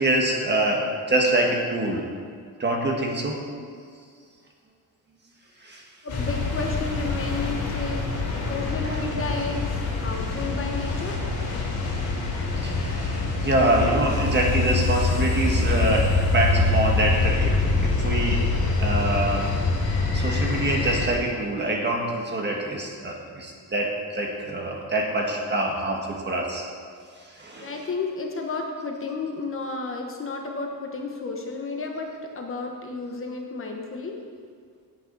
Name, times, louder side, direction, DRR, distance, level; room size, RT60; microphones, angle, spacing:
voice 1, 0.0-2.0 2.6-3.4 5.6-5.8 8.8-9.0 12.6-18.4 18.8-19.5 20.1-26.6 27.3-27.8, right 1 dB, 30° right, 0 dB, 1.5 m, -25 dB
voice 2, 6.0-8.1 8.5-11.2 27.6-32.1 32.3-34.2, left 4 dB, 35° left, 1 dB, 1.1 m, -32 dB
sound 1, 6.1-21.1, left 3 dB, 60° left, 3.5 m, -25 dB
17.0 x 8.6 x 4.0 m, 2.1 s
wide cardioid pair, 180°, 38 cm